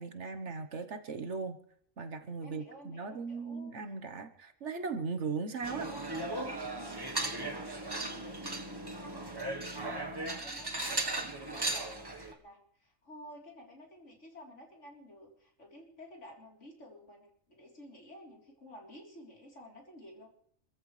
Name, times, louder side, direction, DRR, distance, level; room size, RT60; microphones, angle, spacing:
voice 1, 0.0-1.6 2.0-5.9, right 4 dB, 60° right, 8 dB, 1.4 m, -38 dB
voice 2, 2.4-3.7 7.5-20.3, equal, 65° left, -1 dB, 4.1 m, -52 dB
sound 1, 5.6-12.3, right 2 dB, 20° right, 1.2 m, -37 dB
27.5 x 14.5 x 3.3 m, 0.63 s
omnidirectional pair, 1.4 m